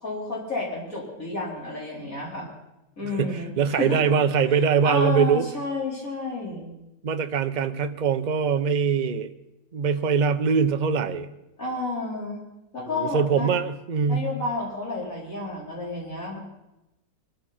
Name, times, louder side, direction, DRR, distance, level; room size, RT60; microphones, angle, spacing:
voice 1, 0.0-2.5 3.0-4.0 4.8-6.7 11.6-12.4 12.7-13.5 14.1-16.4, left 2 dB, 50° left, -4 dB, 4.9 m, -31 dB
voice 2, 3.0-5.5 7.0-9.3 9.7-11.3 12.9-14.3, right 6 dB, 55° right, 9 dB, 0.5 m, -23 dB
22.5 x 14.0 x 4.3 m, 0.94 s
omnidirectional pair, 1.9 m